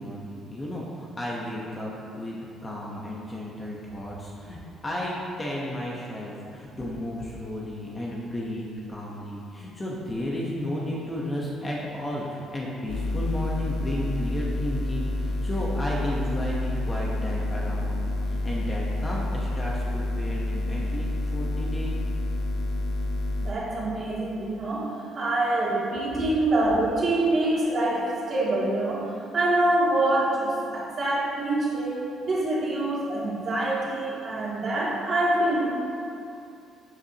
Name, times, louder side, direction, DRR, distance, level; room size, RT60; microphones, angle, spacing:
voice 1, 0.0-22.0, left 1 dB, 15° left, -4 dB, 1.0 m, -33 dB
sound 1, 12.9-23.5, left 2 dB, 75° left, 1.1 m, -28 dB
voice 2, 23.4-32.0 32.3-35.7, right 1 dB, 35° right, -7 dB, 2.4 m, -25 dB
13.5 x 8.1 x 2.9 m, 2.6 s
cardioid pair, 175°, 0 cm